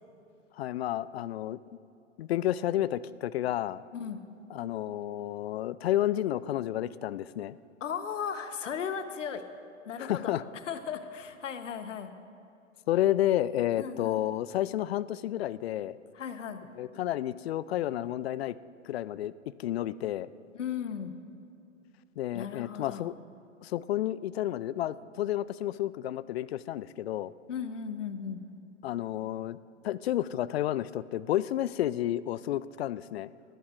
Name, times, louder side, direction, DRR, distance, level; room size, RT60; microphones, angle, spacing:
voice 1, 0.6-1.6 2.2-3.8 4.5-7.6 10.0-10.4 12.9-16.0 16.8-18.6 18.8-19.3 19.6-20.3 22.2-23.1 23.6-27.3 28.8-29.6 29.8-33.3, left 13 dB, 55° left, 18 dB, 0.5 m, -31 dB
voice 2, 7.8-9.4 9.9-10.4 10.6-12.1 13.8-14.2 16.1-16.6 20.5-21.1 22.3-23.1 27.5-28.4, left 7 dB, 70° left, 9 dB, 1.1 m, -36 dB
19.5 x 15.5 x 2.5 m, 2.7 s
figure-of-eight pair, 110°, 39 cm